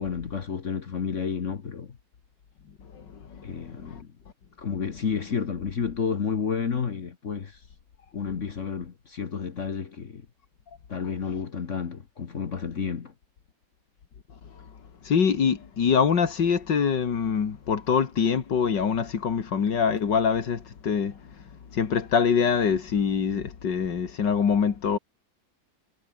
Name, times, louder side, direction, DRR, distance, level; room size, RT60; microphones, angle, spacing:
voice 1, 0.0-2.0 3.4-4.1 4.6-7.6 8.1-10.2 10.9-13.1, left 6 dB, 45° left, 1.4 m, -31 dB
voice 2, 2.9-4.0 15.0-21.2 21.7-25.0, left 6 dB, 65° left, 2.5 m, -24 dB
omnidirectional pair, 2.1 m